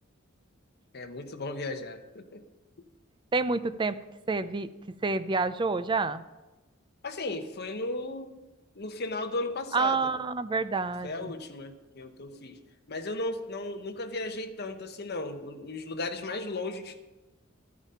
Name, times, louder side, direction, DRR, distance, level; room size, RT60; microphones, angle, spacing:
voice 1, 0.9-2.4 7.0-8.4 8.7-10.1 11.0-12.6 12.9-17.0, left 2 dB, 50° left, 6 dB, 1.1 m, -35 dB
voice 2, 3.3-4.0 4.3-4.7 5.0-6.2 9.7-11.3, right 4 dB, 25° right, 13 dB, 0.5 m, -28 dB
13.0 x 9.1 x 5.7 m, 1.1 s
head